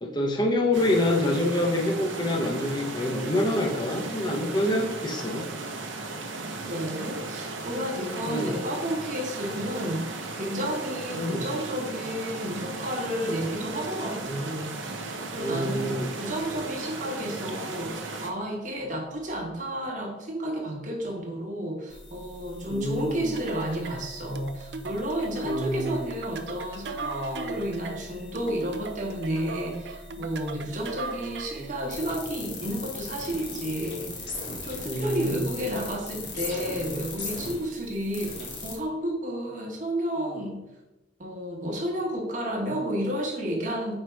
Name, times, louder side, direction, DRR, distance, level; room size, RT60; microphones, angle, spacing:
voice 1, 0.0-5.5 8.3-8.5 11.1-11.5 15.4-16.1 22.7-23.4 25.4-26.0 34.8-35.5, left 1 dB, 25° left, 0 dB, 0.7 m, -26 dB
sound 1, 0.7-18.3, right 3 dB, 90° right, 0.8 m, -36 dB
voice 2, 6.7-40.6 41.2-44.0, equal, 40° right, 0 dB, 1.2 m, -32 dB
sound 2, 21.9-38.8, left 3 dB, 70° left, 1.4 m, -40 dB
sound 3, 23.4-31.7, right 4 dB, 65° right, 0.5 m, -39 dB
4.9 x 4.4 x 4.6 m, 0.96 s
head